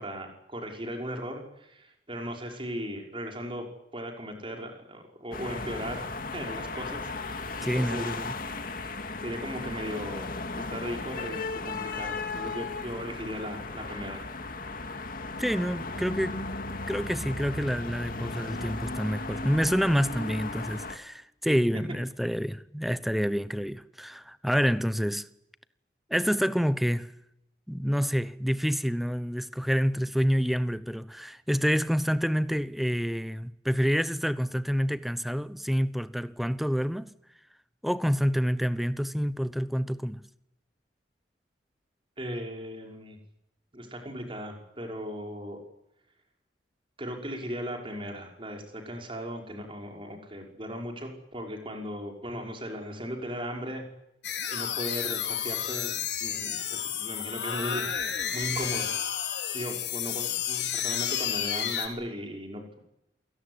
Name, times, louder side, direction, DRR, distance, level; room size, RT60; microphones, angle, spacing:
voice 1, 0.0-3.7 3.9-8.1 9.2-10.3 10.5-14.3 42.2-43.2 43.7-45.6 47.0-53.8 54.5-57.9 58.3-58.9 59.5-62.8, equal, 30° right, 5.8 m, -37 dB
sound 1, 5.3-21.0, left 3 dB, 55° left, 2.2 m, -36 dB
voice 2, 7.6-8.3 15.4-16.4 16.9-25.3 26.1-27.1 27.7-37.1 37.8-40.2, equal, ahead, 0.9 m, -28 dB
sound 2, 54.2-61.9, left 9 dB, 80° left, 4.0 m, -31 dB
27.5 x 18.0 x 9.8 m
head